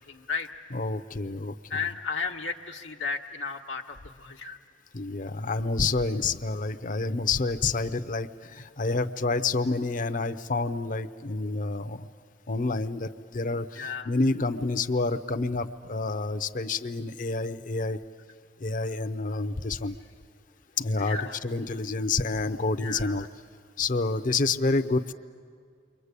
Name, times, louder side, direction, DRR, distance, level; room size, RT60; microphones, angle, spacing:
voice 1, 0.0-0.6 1.7-4.6 13.7-14.1 21.0-21.4 22.8-23.3, left 5 dB, 85° left, 1 dB, 1.2 m, -34 dB
voice 2, 0.7-1.6 4.9-12.1 12.5-18.0 18.6-20.0 20.8-23.3 23.8-25.1, left 3 dB, 45° left, 11 dB, 0.7 m, -28 dB
29.0 x 23.5 x 8.3 m, 2.1 s
head